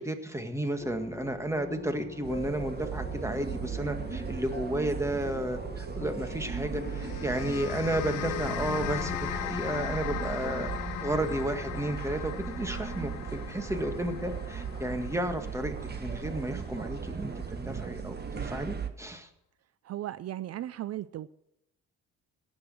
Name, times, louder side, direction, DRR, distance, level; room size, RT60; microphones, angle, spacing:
voice 1, 0.0-10.7 11.0-19.3, right 1 dB, 10° right, 7 dB, 1.8 m, -33 dB
sound 1, 0.8-11.8, left 4 dB, 25° left, 1.0 m, -43 dB
sound 2, 2.2-18.9, right 6 dB, 35° right, 1.5 m, -37 dB
sound 3, 6.8-17.3, left 12 dB, 90° left, 0.8 m, -39 dB
voice 2, 19.8-21.3, right 13 dB, 55° right, 15 dB, 0.5 m, -36 dB
17.5 x 6.4 x 7.7 m, 0.81 s
cardioid pair, 90°, 30 cm